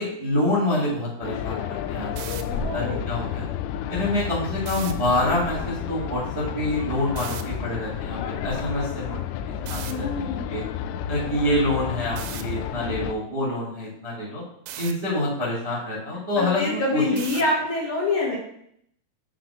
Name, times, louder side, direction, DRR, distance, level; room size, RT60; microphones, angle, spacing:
voice 1, 0.0-2.5 2.7-3.5 3.9-9.2 9.6-10.6 11.1-14.4 14.7-17.0, left 1 dB, 15° right, -7 dB, 1.3 m, -27 dB
sound 1, 1.2-13.2, left 9 dB, 90° left, 3.1 m, -31 dB
sound 2, 2.0-2.4 4.6-4.9 7.2-7.4 9.7-9.9 12.2-12.4 14.7-14.9 17.2-17.5, right 11 dB, 80° right, 2.8 m, -36 dB
voice 2, 2.4-3.1 9.9-10.6 16.4-18.4, left 2 dB, 70° left, -4 dB, 1.8 m, -26 dB
7.5 x 3.8 x 5.8 m, 0.70 s
omnidirectional pair, 5.5 m